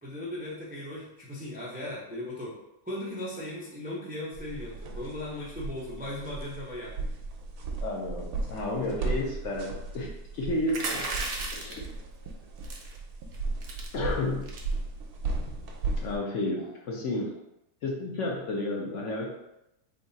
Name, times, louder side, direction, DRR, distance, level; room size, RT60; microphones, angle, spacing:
voice 1, 0.0-2.6 2.8-6.9 16.6-16.7, left 1 dB, 15° right, -6 dB, 0.3 m, -37 dB
sound 1, 4.3-16.2, right 3 dB, 75° right, 1.1 m, -35 dB
voice 2, 7.8-11.1 11.5-11.9 13.9-14.5 16.0-17.2 17.8-19.3, left 2 dB, 60° left, -2 dB, 0.9 m, -31 dB
sound 2, 10.7-11.9 12.6-12.9 13.3-13.4 13.6-13.9 14.4-14.7, right 3 dB, 55° right, 0.7 m, -34 dB
3.7 x 2.4 x 3.9 m, 0.86 s
omnidirectional pair, 1.7 m